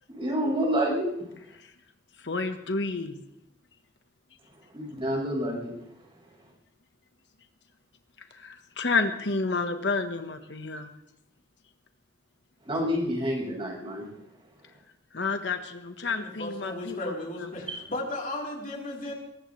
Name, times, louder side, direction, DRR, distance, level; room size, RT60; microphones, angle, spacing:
voice 1, 0.1-1.1 4.7-5.7 12.6-14.1 17.7-17.8, equal, 30° right, -5 dB, 7.4 m, -28 dB
voice 2, 2.2-3.2 8.3-10.9 15.1-17.5, left 4 dB, 75° left, 7 dB, 1.3 m, -30 dB
voice 3, 16.0-19.1, left 2 dB, 50° left, -2 dB, 3.9 m, -35 dB
22.5 x 19.5 x 3.3 m, 0.77 s
head